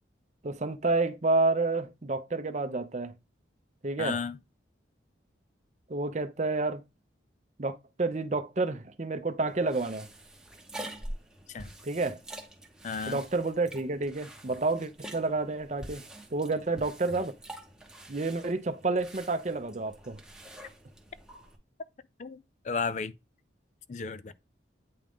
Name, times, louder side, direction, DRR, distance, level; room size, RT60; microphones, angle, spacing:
voice 1, 0.4-3.1 3.8-4.2 5.9-6.8 7.6-10.1 11.8-12.2 13.1-16.0 16.3-17.3 18.1-20.2, right 3 dB, 40° right, 0.6 m, -29 dB
voice 2, 4.0-4.4 11.5-11.7 12.8-13.2 22.2-22.4 22.6-23.1 23.9-24.3, left 5 dB, 40° left, 0.4 m, -33 dB
sound 1, 9.5-21.6, right 1 dB, 5° right, 0.9 m, -46 dB
8.6 x 3.7 x 3.5 m
head